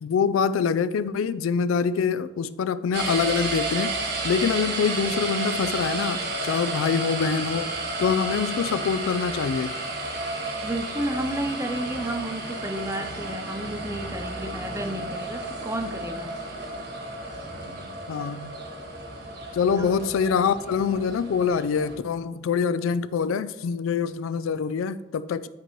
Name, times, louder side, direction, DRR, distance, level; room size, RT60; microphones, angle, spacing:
voice 1, 0.0-3.9 4.2-7.7 8.0-9.8 18.1-18.5 19.5-25.5, left 6 dB, 80° left, 0.3 m, -25 dB
sound 1, 2.9-22.0, right 2 dB, 55° right, 1.2 m, -32 dB
voice 2, 10.6-16.3 19.8-20.0, right 1 dB, 15° right, 0.6 m, -32 dB
10.5 x 4.5 x 3.1 m
head